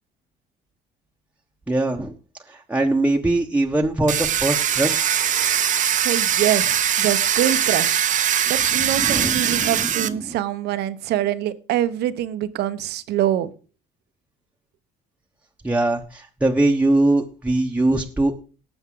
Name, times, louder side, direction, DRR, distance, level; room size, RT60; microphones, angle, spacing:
voice 1, 1.7-2.1 2.5-5.3 9.0-10.3 15.6-18.3, right 2 dB, 10° right, 1 dB, 1.1 m, -22 dB
Domestic sounds home sounds, 4.1-10.1, right 9 dB, 50° right, 0.8 m, -21 dB
voice 2, 6.0-8.0 8.5-13.5, right 12 dB, 75° right, 13 dB, 1.0 m, -24 dB
18.5 x 7.1 x 3.9 m, 0.36 s
cardioid pair, 110°, 17 cm